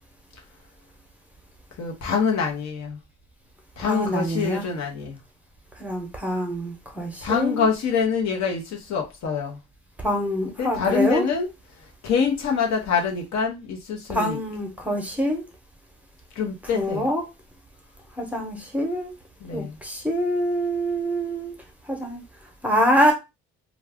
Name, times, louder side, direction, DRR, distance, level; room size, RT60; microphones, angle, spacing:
voice 1, 1.8-3.0 3.8-5.2 7.2-9.6 10.6-11.5 12.0-14.4 16.4-17.1 19.4-19.8, left 6 dB, 65° left, 0.9 m, -25 dB
voice 2, 3.9-4.7 5.8-7.7 10.0-11.2 14.1-15.4 16.7-17.2 18.2-19.1 19.5-21.5 21.9-22.2 22.6-23.1, equal, 5° right, 0.9 m, -25 dB
2.4 x 2.2 x 3.5 m
cardioid pair, 90°, 30 cm